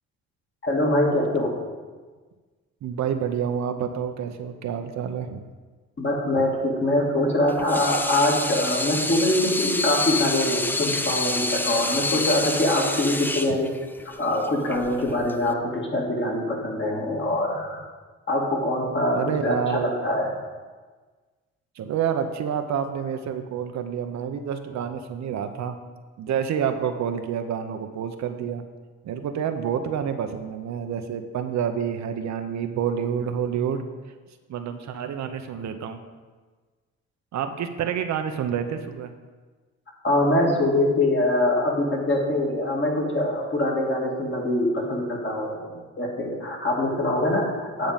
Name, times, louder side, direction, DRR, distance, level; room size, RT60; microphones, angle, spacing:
voice 1, 0.6-1.5 6.0-13.7 14.2-17.8 18.3-20.3 40.0-47.9, left 1 dB, 40° left, -1 dB, 2.2 m, -24 dB
voice 2, 2.8-5.5 19.1-19.9 21.8-25.8 26.2-28.6 29.0-33.8 34.5-36.0 37.3-39.1, right 8 dB, 65° right, 7 dB, 0.7 m, -28 dB
Water tap faucet / Sink (filling or washing), 7.5-15.5, left 2 dB, 5° left, 0.4 m, -28 dB
9.0 x 3.9 x 7.1 m, 1.4 s
cardioid pair, 90°, 30 cm